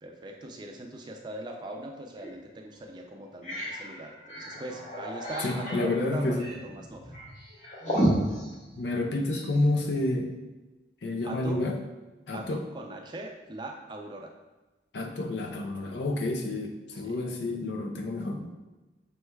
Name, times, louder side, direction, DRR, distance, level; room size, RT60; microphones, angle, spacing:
voice 1, 0.0-7.1 11.2-11.6 12.3-14.3 17.0-17.3, right 1 dB, 25° right, 2 dB, 0.4 m, -40 dB
sound 1, 2.2-2.3 2.8-2.9 3.2-9.6, right 1 dB, 40° left, 1.1 m, -33 dB
voice 2, 5.4-6.5 8.8-10.3 11.0-11.8 12.3-12.6 14.9-18.5, left 2 dB, 75° left, 3 dB, 0.5 m, -29 dB
5.3 x 3.1 x 2.2 m, 1.1 s
head